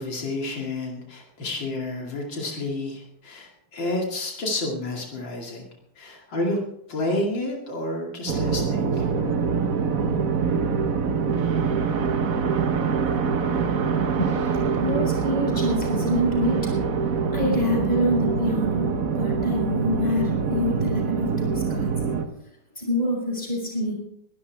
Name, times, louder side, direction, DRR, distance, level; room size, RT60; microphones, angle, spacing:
voice 1, 0.0-5.7 6.0-6.6 6.9-9.1, left 2 dB, 80° left, 0 dB, 3.2 m, -30 dB
sound 1, 8.3-22.3, right 6 dB, 50° right, 1.4 m, -24 dB
voice 2, 14.7-16.6 17.3-18.9 19.1-21.9 22.8-24.0, left 1 dB, 20° left, 0 dB, 5.4 m, -26 dB
22.0 x 13.0 x 3.5 m, 0.73 s
omnidirectional pair, 2.0 m